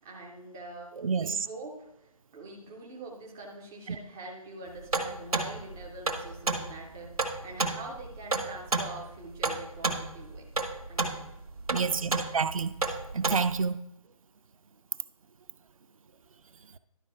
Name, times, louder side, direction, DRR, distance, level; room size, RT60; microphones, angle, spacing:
voice 1, 0.0-10.5 10.8-11.3, right 2 dB, 5° right, 0.3 m, -44 dB
voice 2, 1.0-1.4 3.9-4.0 11.7-12.8 13.1-13.8, right 5 dB, 70° right, 0.5 m, -28 dB
sound 1, 4.9-13.6, right 3 dB, 85° right, 1.3 m, -31 dB
11.5 x 4.3 x 4.4 m
figure-of-eight pair, 150°, 18 cm